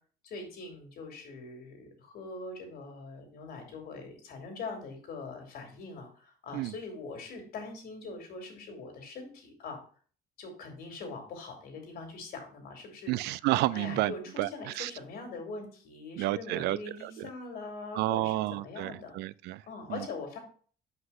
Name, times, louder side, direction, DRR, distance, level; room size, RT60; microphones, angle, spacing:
voice 1, 0.2-9.8 10.4-13.1 13.7-19.1 19.7-20.4, left 3 dB, 65° left, 3.1 m, -42 dB
voice 2, 13.1-14.9 16.2-17.3 17.9-19.6 19.9-20.0, right 17 dB, 85° right, 0.4 m, -31 dB
5.7 x 5.6 x 5.7 m
cardioid pair, 110°, 17 cm